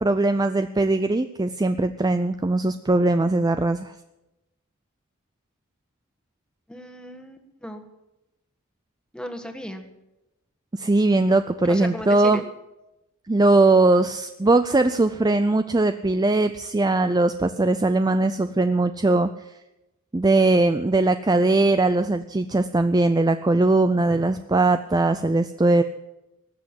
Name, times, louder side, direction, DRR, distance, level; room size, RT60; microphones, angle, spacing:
voice 1, 0.0-3.9 10.7-12.4 13.3-19.3 20.1-25.8, right 2 dB, 20° right, 10 dB, 0.4 m, -20 dB
voice 2, 6.7-7.9 9.1-9.8 11.6-12.4 24.1-24.2, equal, 5° left, 6 dB, 1.4 m, -36 dB
19.0 x 7.5 x 9.5 m, 0.95 s
head